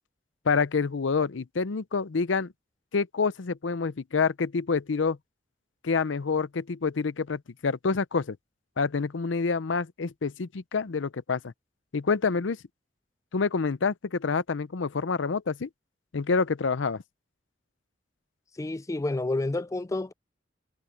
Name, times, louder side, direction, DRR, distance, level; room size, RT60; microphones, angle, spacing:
voice 1, 0.5-2.5 2.9-5.2 5.8-8.4 8.8-11.5 11.9-12.6 13.3-15.7 16.1-17.0, left 5 dB, 90° left, 0.6 m, -27 dB
voice 2, 18.6-20.1, left 2 dB, 15° left, 0.3 m, -29 dB
head